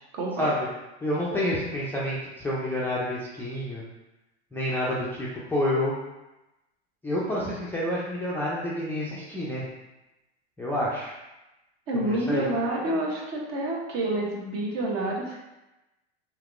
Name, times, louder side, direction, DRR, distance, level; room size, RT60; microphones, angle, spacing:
voice 1, 0.1-0.5 11.9-15.4, right 1 dB, 45° right, -1 dB, 0.9 m, -28 dB
voice 2, 1.0-3.8 4.5-5.9 7.0-9.6 10.6-11.2 11.9-12.5, left 1 dB, 5° left, -8 dB, 0.4 m, -28 dB
3.3 x 2.9 x 2.4 m, 1.0 s
hypercardioid pair, 110°, 34 cm